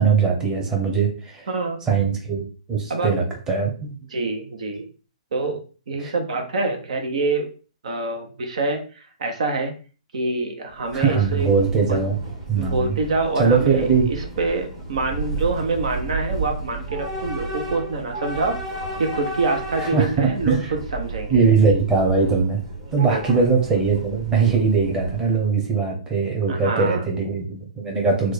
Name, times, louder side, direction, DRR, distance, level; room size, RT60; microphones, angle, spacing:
voice 1, 0.0-1.5 1.9-3.9 6.0-6.1 10.9-12.2 12.5-13.0 13.4-14.1 19.8-20.7 21.3-22.6 22.9-28.3, right 5 dB, 15° right, 0 dB, 0.9 m, -21 dB
voice 2, 1.5-1.8 2.9-3.1 4.1-4.9 5.3-5.6 5.9-7.5 7.8-9.7 10.1-11.5 11.9-12.0 12.5-18.6 19.0-21.4 23.0-23.4 26.5-27.0, right 3 dB, 65° right, 4 dB, 0.6 m, -26 dB
Train / Subway metro underground, 10.7-25.6, right 2 dB, 40° right, 1.4 m, -33 dB
3.1 x 2.2 x 4.1 m, 0.37 s
hypercardioid pair, 125°, 4 cm